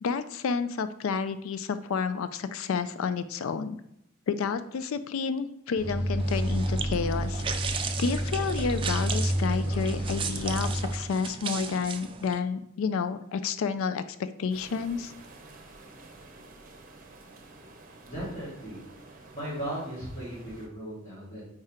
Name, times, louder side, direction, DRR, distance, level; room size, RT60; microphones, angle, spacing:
voice 1, 0.0-3.8 4.3-7.4 8.0-15.1, left 5 dB, 70° left, 12 dB, 0.4 m, -30 dB
sound 1, 5.8-10.9, equal, 50° left, 1.7 m, -29 dB
sound 2, 6.2-12.4, right 6 dB, 25° right, 0.5 m, -36 dB
sound 3, 14.5-20.7, right 2 dB, 40° right, 0.8 m, -50 dB
voice 2, 18.0-18.8 19.0-21.5, right 1 dB, 30° left, -11 dB, 2.5 m, -37 dB
4.8 x 4.2 x 4.9 m, 0.79 s
head